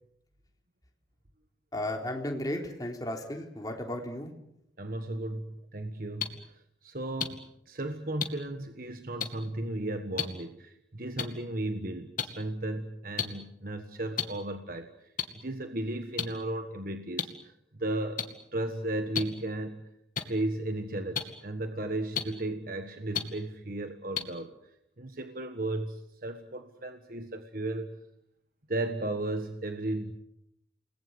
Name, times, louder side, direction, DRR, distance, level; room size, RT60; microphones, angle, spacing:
voice 1, 1.7-4.3, left 1 dB, 20° left, 2 dB, 3.6 m, -34 dB
voice 2, 4.8-6.4 6.8-14.9 15.4-18.2 18.5-19.9 20.2-24.5 25.0-27.9 28.7-30.1, right 1 dB, 50° right, 7 dB, 1.5 m, -35 dB
sound 1, 6.2-6.3 7.2-7.3 8.2-8.3 9.2-9.3 10.2-10.3 11.2-11.3 12.2-12.3 13.2-13.3 14.2-14.3 15.2-15.3 16.2-16.3 17.2-17.3 18.2-18.3 19.2-19.3 20.2-20.3 21.2-21.3 22.2-22.3 23.1-23.2 24.2-24.3, left 7 dB, 45° left, 2.3 m, -29 dB
29.5 x 20.0 x 8.1 m, 0.80 s
head